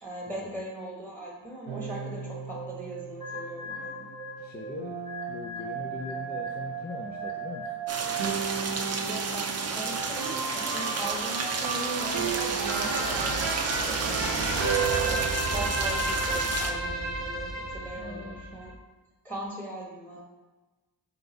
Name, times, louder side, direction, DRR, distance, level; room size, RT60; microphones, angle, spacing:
voice 1, 0.0-4.1 9.0-14.5 14.9-18.8 19.2-20.2, right 1 dB, 5° left, -3 dB, 1.2 m, -39 dB
sound 1, 1.7-18.7, right 4 dB, 80° right, 0.7 m, -32 dB
sound 2, 3.2-7.9, left 5 dB, 45° left, 1.2 m, -43 dB
voice 2, 4.4-5.0 5.3-7.7 18.0-18.5, left 3 dB, 25° left, -1 dB, 0.4 m, -40 dB
sound 3, 7.9-16.7, right 4 dB, 35° right, 0.5 m, -32 dB
4.0 x 3.4 x 3.9 m, 1.2 s
cardioid pair, 65°, 45 cm